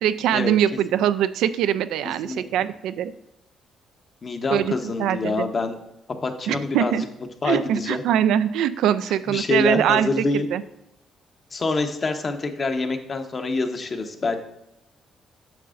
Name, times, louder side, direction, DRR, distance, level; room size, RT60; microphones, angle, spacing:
voice 1, 0.0-3.1 4.5-5.5 6.5-7.1 7.4-10.6, right 10 dB, 85° right, 13 dB, 0.3 m, -22 dB
voice 2, 4.2-5.8 6.2-6.9 7.4-8.0 9.3-10.5 11.5-14.4, left 3 dB, 40° left, 5 dB, 1.0 m, -26 dB
9.1 x 6.7 x 2.5 m, 0.85 s
cardioid pair, 90°, 0 cm